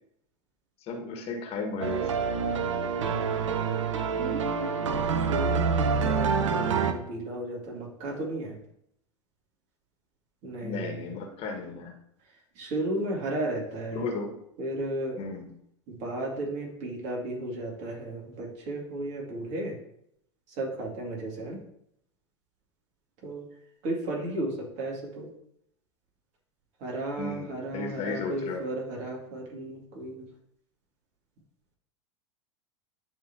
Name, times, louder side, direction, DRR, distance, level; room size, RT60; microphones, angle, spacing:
voice 1, 0.8-2.2 10.6-12.0 13.9-14.3 15.2-15.5 27.2-28.6, left 3 dB, 40° left, 2 dB, 1.5 m, -34 dB
sound 1, 1.8-6.9, right 5 dB, 80° right, 0.7 m, -27 dB
voice 2, 4.2-4.7 5.2-8.5 10.4-11.0 12.6-14.0 14.6-15.2 15.9-19.7 20.6-21.6 23.2-23.4 23.8-25.3 26.8-30.3, right 1 dB, 50° right, -1 dB, 2.3 m, -34 dB
10.5 x 3.6 x 2.8 m, 0.74 s
hypercardioid pair, 90°, 16 cm